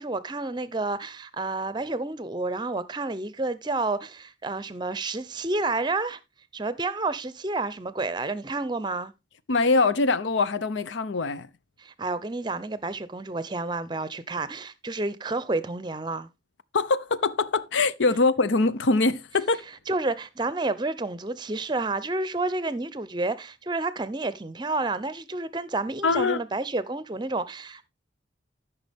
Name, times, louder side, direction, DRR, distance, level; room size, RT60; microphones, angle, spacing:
voice 1, 0.0-6.2 6.5-9.1 11.8-16.3 19.9-27.9, right 2 dB, 25° right, 0.6 m, -30 dB
voice 2, 9.5-11.5 16.7-19.6 26.0-26.4, left 3 dB, 80° left, 0.7 m, -23 dB
13.5 x 5.8 x 3.5 m
head